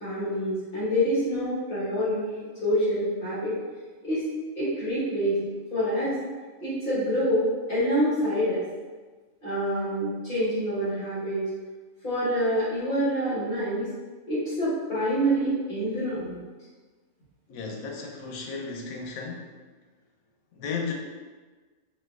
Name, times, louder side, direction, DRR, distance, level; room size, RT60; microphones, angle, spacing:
voice 1, 0.0-3.5 4.0-4.2 4.6-5.4 5.7-6.2 6.6-8.6 9.4-11.4 12.0-13.9 14.3-16.4, equal, 40° left, -11 dB, 1.5 m, -26 dB
voice 2, 17.5-19.5 20.5-20.9, left 4 dB, 85° left, 1 dB, 1.0 m, -34 dB
3.8 x 2.5 x 2.4 m, 1.4 s
omnidirectional pair, 1.4 m